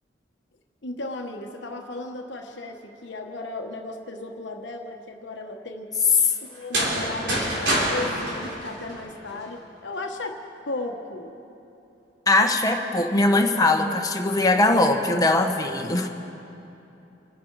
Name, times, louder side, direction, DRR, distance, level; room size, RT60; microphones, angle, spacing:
voice 1, 0.8-6.0 6.4-11.3, left 2 dB, 90° left, 3 dB, 1.2 m, -35 dB
sound 1, 6.5-9.4, right 1 dB, 85° right, 4.2 m, -26 dB
voice 2, 12.3-16.1, left 2 dB, 20° left, 3 dB, 1.1 m, -21 dB
27.5 x 10.5 x 4.7 m, 2.9 s
head